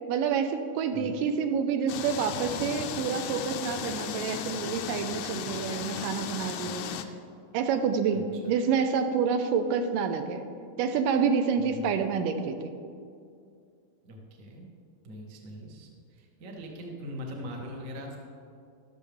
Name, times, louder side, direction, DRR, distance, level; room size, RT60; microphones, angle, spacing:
voice 1, 0.1-7.0 7.5-10.5 10.8-12.7, right 6 dB, 80° right, 7 dB, 2.2 m, -28 dB
sound 1, 1.9-7.0, left 8 dB, 80° left, 1.8 m, -35 dB
voice 2, 11.6-12.1 14.0-14.7 15.0-18.2, equal, 60° right, 0 dB, 0.8 m, -41 dB
13.0 x 12.0 x 3.5 m, 2.3 s
omnidirectional pair, 4.0 m